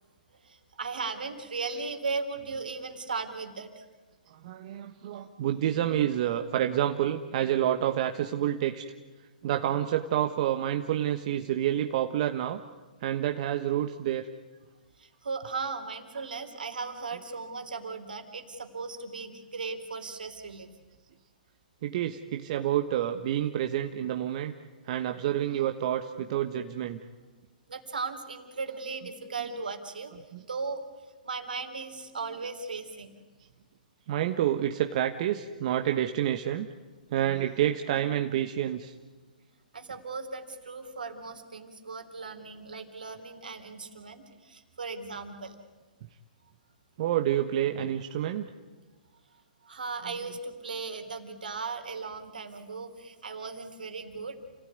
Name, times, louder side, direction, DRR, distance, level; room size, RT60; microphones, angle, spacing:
voice 1, 0.3-3.8 15.0-20.7 27.7-30.1 30.5-30.8 31.2-33.2 39.7-45.6 49.6-54.4, right 4 dB, 75° right, 6 dB, 3.5 m, -37 dB
voice 2, 4.3-8.9 9.4-12.6 13.0-14.3 17.1-17.2 21.8-24.5 24.8-27.0 29.0-29.1 30.1-30.2 32.3-32.4 34.1-36.7 37.1-38.9 47.0-48.5 50.0-50.3, right 11 dB, 50° right, 6 dB, 1.3 m, -28 dB
29.5 x 16.5 x 9.5 m, 1.3 s
figure-of-eight pair, 120°, 5 cm